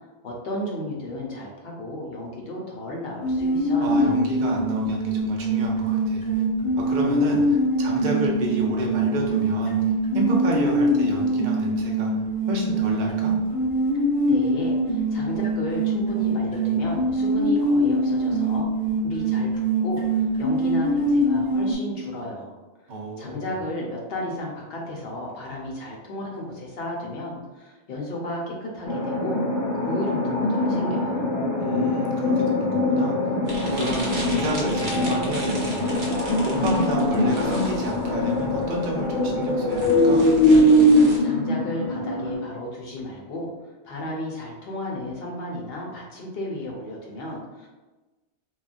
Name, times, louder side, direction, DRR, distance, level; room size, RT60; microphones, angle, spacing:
voice 1, 0.2-4.1 13.9-18.7 19.0-19.5 19.8-22.5 23.2-29.4 29.7-31.3 41.2-43.5 43.8-47.7, left 1 dB, 65° left, -2 dB, 0.8 m, -33 dB
sound 1, 3.2-21.7, right 1 dB, 35° left, 0.3 m, -23 dB
voice 2, 3.8-6.4 6.8-13.3 22.9-23.5 31.6-33.4 33.6-40.3, right 1 dB, 55° right, -1 dB, 0.6 m, -30 dB
sound 2, 28.8-42.3, left 1 dB, 85° left, 1.0 m, -22 dB
sound 3, 33.5-41.2, right 1 dB, 75° right, 1.0 m, -37 dB
3.1 x 2.2 x 2.4 m, 1.2 s
omnidirectional pair, 1.1 m